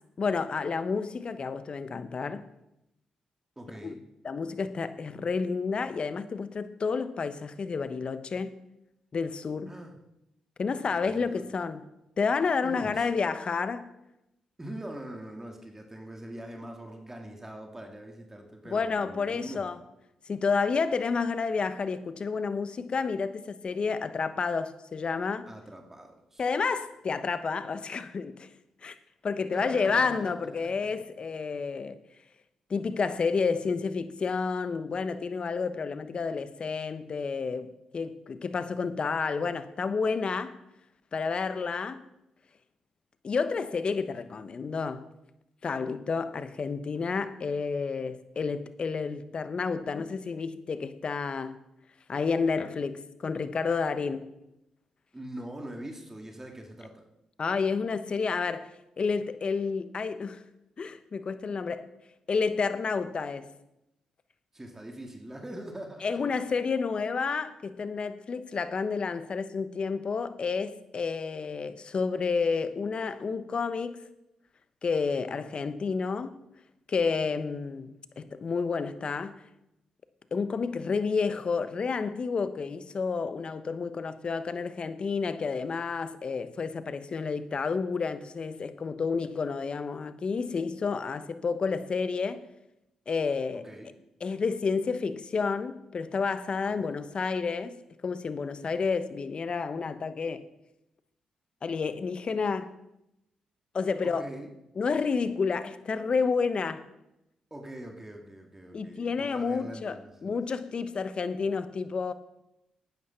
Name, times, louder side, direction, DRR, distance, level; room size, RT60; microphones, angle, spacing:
voice 1, 0.2-2.4 3.8-3.9 4.2-8.6 9.1-9.7 10.6-11.8 12.2-13.9 18.6-19.8 20.3-25.5 26.4-28.5 28.8-28.9 29.2-32.0 32.7-40.5 41.1-42.0 43.2-45.1 45.6-51.6 52.1-54.3 57.4-58.7 59.0-60.4 60.8-61.9 62.3-63.5 66.0-74.1 74.8-76.4 76.9-79.4 80.3-92.4 93.1-93.7 94.2-97.8 98.0-100.5 101.6-102.7 103.7-104.3 104.8-106.9 108.7-112.1, left 5 dB, 50° left, 1.0 m, -30 dB
voice 2, 3.6-4.0 9.7-10.0 10.9-11.5 12.6-13.1 14.6-19.7 25.5-26.5 29.5-30.3 55.1-57.0 64.5-66.2 93.5-93.9 96.7-96.8 104.0-104.5 107.5-110.3, right 1 dB, 20° right, 2.2 m, -43 dB
11.5 x 9.5 x 5.8 m
supercardioid pair, 50°, 2 cm